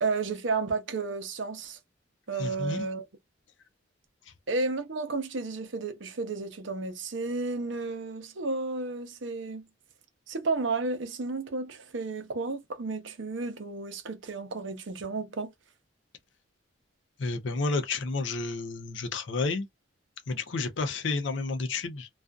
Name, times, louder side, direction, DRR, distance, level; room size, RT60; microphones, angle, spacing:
voice 1, 0.0-1.8 2.3-3.1 4.5-9.6 10.3-15.5, right 3 dB, 70° right, 0.7 m, -32 dB
voice 2, 2.4-2.9 17.2-19.7 20.3-22.1, left 3 dB, 65° left, 0.5 m, -31 dB
2.4 x 2.4 x 2.2 m
head